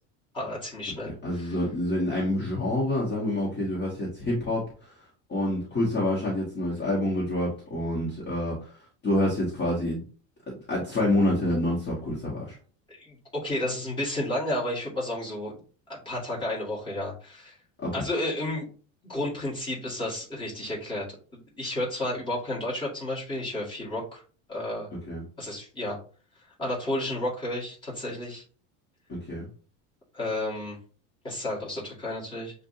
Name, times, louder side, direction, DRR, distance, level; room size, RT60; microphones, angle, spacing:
voice 1, 0.3-1.6 12.9-15.6 15.9-17.6 17.9-18.7 19.0-21.0 21.3-24.2 24.5-24.9 25.4-26.0 26.6-28.4 30.1-30.8 31.2-32.5, left 1 dB, 15° left, -6 dB, 1.9 m, -32 dB
voice 2, 1.2-4.9 5.3-10.0 10.5-12.6 17.8-18.1 25.1-25.2 29.1-29.5, left 1 dB, 30° left, -5 dB, 1.5 m, -27 dB
7.1 x 2.6 x 2.7 m, 0.40 s
cardioid pair, 165°, 35 cm